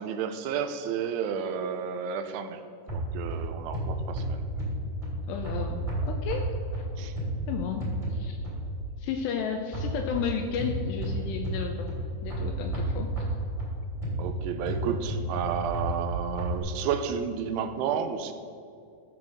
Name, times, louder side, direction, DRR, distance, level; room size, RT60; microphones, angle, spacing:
voice 1, 0.0-2.6 2.9-4.4 7.0-7.1 14.2-18.3, right 7 dB, 85° right, 8 dB, 3.1 m, -31 dB
sound 1, 2.9-8.9 9.7-16.6, right 1 dB, 10° right, 2.4 m, -32 dB
voice 2, 5.3-6.8 7.5-8.4 9.0-11.9 12.2-13.3, left 6 dB, 80° left, 5 dB, 2.5 m, -33 dB
14.0 x 6.0 x 6.6 m, 2.4 s
omnidirectional pair, 5.5 m